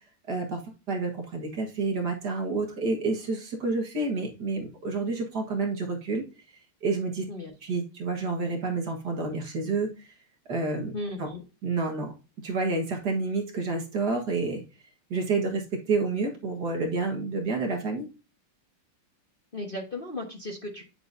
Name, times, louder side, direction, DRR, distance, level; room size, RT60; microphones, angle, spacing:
voice 1, 0.3-0.6 0.9-6.2 6.8-7.2 7.6-10.1 10.5-10.9 11.2-11.3 11.6-12.1 12.4-14.6 15.1-18.1, right 3 dB, 50° right, 1 dB, 2.0 m, -29 dB
voice 2, 10.9-11.4 19.5-20.8, left 2 dB, 30° left, 0 dB, 1.2 m, -35 dB
9.4 x 7.0 x 2.7 m, 0.31 s
omnidirectional pair, 2.4 m